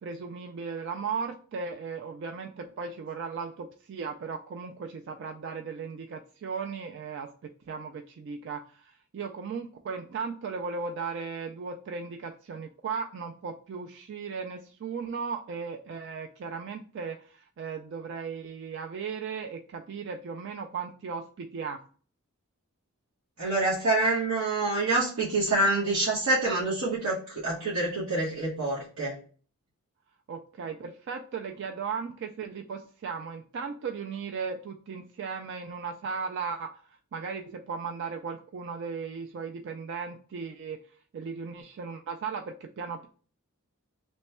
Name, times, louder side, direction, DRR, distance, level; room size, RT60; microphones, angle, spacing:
voice 1, 0.0-21.8 30.3-40.8 41.1-43.1, right 5 dB, 55° right, 4 dB, 0.3 m, -36 dB
voice 2, 23.4-29.2, right 2 dB, 80° right, -7 dB, 1.1 m, -26 dB
3.1 x 2.2 x 4.1 m, 0.41 s
head